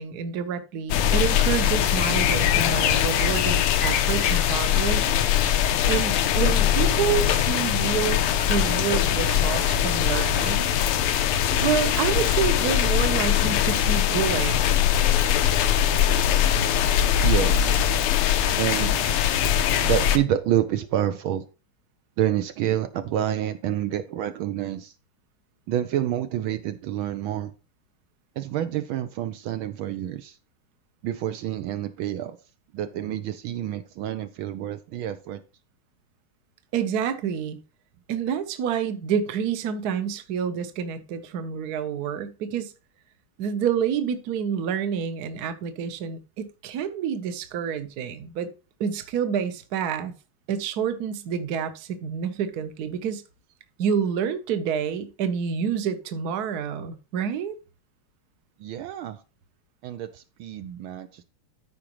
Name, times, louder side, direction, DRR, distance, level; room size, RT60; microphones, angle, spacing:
voice 1, 0.0-5.2 5.9-10.7 11.6-14.7 36.7-37.6 38.1-42.7 43.4-48.5 48.8-50.1 50.5-53.2 53.8-57.5, right 7 dB, 55° right, 1.2 m, -28 dB
sound 1, 0.9-20.2, left 10 dB, 85° left, 1.7 m, -22 dB
voice 2, 17.2-17.8 18.6-19.0 19.8-21.4 22.2-24.9 25.7-27.5 28.4-30.4 31.0-32.4 32.7-35.4 58.6-59.2 59.8-61.2, right 11 dB, 75° right, 1.4 m, -28 dB
13.5 x 5.0 x 3.0 m
omnidirectional pair, 2.4 m